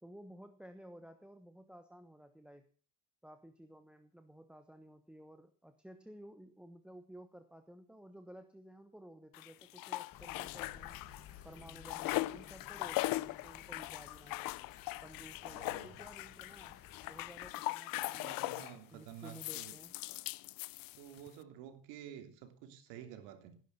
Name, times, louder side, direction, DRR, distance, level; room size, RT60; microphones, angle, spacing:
voice 1, 0.0-2.7 3.2-11.0 11.4-14.5 14.9-18.6 18.9-20.0, right 1 dB, ahead, 1.1 m, -55 dB
sound 1, 9.3-11.3 11.6-18.8 19.2-21.3, left 19 dB, 55° left, 0.7 m, -40 dB
sound 2, 10.1-17.5, left 8 dB, 35° left, 2.1 m, -56 dB
voice 2, 15.4-16.0 18.1-19.8 20.9-23.6, right 10 dB, 75° right, 3.0 m, -51 dB
17.5 x 11.0 x 5.8 m
cardioid pair, 140°, 40 cm